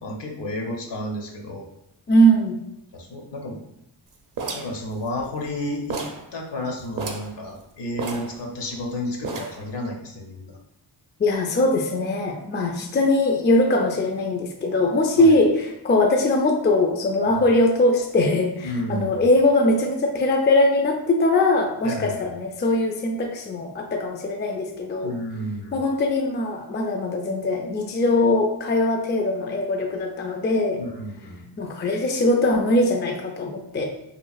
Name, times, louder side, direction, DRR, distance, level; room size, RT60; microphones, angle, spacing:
voice 1, 0.0-1.7 2.9-3.6 4.5-6.0 6.3-10.6 15.2-15.4 17.3-17.4 18.6-19.3 21.8-22.3 25.0-25.8 30.7-31.5, left 1 dB, 60° left, 1 dB, 0.8 m, -31 dB
voice 2, 2.1-2.6 11.2-25.1 25.7-30.8 31.6-33.9, left 1 dB, 25° left, 3 dB, 0.3 m, -21 dB
sound 1, 4.4-5.6 5.9-6.3 6.6-6.7 6.9-7.3 8.0-8.8 9.2-9.7, right 4 dB, 45° right, 0.6 m, -32 dB
3.0 x 2.4 x 2.3 m, 0.83 s
cardioid pair, 45°, 47 cm